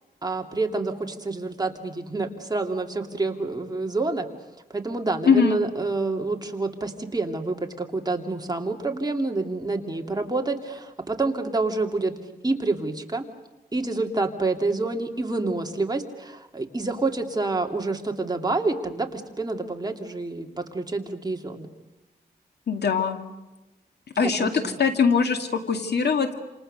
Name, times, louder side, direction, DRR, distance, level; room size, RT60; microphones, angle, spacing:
voice 1, 0.2-4.3 4.7-12.1 12.4-13.2 13.7-21.7 24.2-24.8, right 3 dB, 25° right, 3 dB, 2.6 m, -28 dB
voice 2, 5.2-5.6 22.7-23.2 24.2-24.5 24.8-26.3, left 6 dB, 90° left, 5 dB, 2.4 m, -21 dB
28.5 x 28.0 x 6.7 m, 1.1 s
wide cardioid pair, 110°, 17 cm